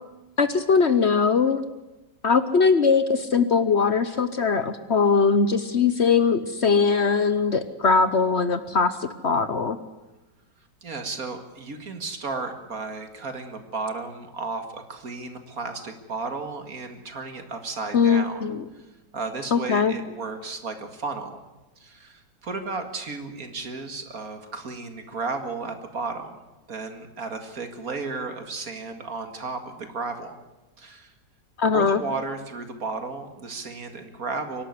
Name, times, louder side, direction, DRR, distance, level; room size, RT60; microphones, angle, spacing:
voice 1, 0.4-1.6 2.2-9.8 17.9-18.6 19.5-19.9 31.6-32.0, left 5 dB, 50° left, 12 dB, 0.9 m, -21 dB
voice 2, 10.8-18.5 18.7-18.8 19.1-21.4 21.8-26.4 26.7-30.4 30.8-31.1 31.7-34.6, right 3 dB, 55° right, 7 dB, 2.4 m, -34 dB
24.5 x 12.0 x 9.6 m, 1.1 s
omnidirectional pair, 1.9 m